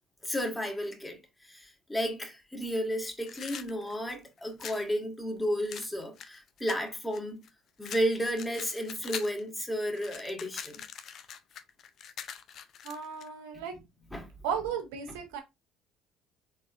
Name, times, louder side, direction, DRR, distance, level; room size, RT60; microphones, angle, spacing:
voice 1, 0.2-1.2 1.5-7.4 7.8-10.8 14.1-14.3, equal, 15° left, 1.8 m, -32 dB
sound 1, 3.2-4.9 5.7-7.5 7.8-9.4 9.7-13.3, left 8 dB, 55° left, 0.5 m, -43 dB
voice 2, 12.8-13.8 14.4-15.4, right 7 dB, 75° right, 1.1 m, -35 dB
4.2 x 3.8 x 2.5 m
hypercardioid pair, 60°, 0 cm